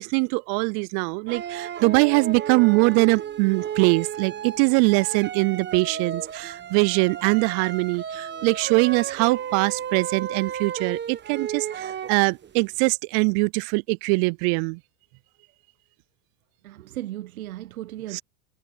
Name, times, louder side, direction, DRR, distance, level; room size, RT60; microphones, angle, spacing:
voice 1, 0.0-14.8 18.1-18.2, right 34 dB, 50° right, 0.5 m, -22 dB
sound 1, 1.3-12.6, right 9 dB, 25° right, 1.4 m, -33 dB
voice 2, 16.6-18.2, right 14 dB, 80° right, 1.2 m, -36 dB
hypercardioid pair, 100°, 42 cm